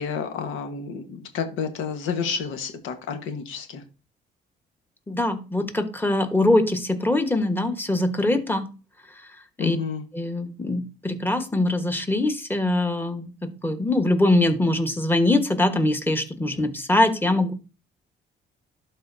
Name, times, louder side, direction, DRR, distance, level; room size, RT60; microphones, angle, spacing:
voice 1, 0.0-3.8 9.6-10.0, left 6 dB, 90° left, 1.4 m, -30 dB
voice 2, 5.1-8.6 9.6-9.8 10.1-17.5, left 1 dB, 10° left, 1.3 m, -23 dB
12.0 x 4.1 x 2.7 m
cardioid pair, 90°, 20 cm